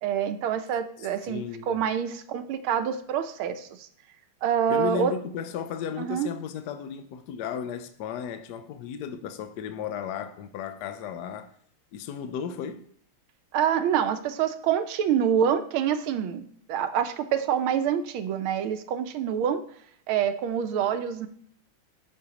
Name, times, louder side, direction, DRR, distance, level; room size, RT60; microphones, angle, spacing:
voice 1, 0.0-3.9 4.4-5.1 6.0-6.3 13.5-19.6 20.1-21.3, right 8 dB, 80° right, 1.5 m, -26 dB
voice 2, 1.0-1.8 4.7-11.5 11.9-12.9, left 8 dB, 70° left, 1.0 m, -35 dB
13.0 x 5.5 x 2.9 m
omnidirectional pair, 2.3 m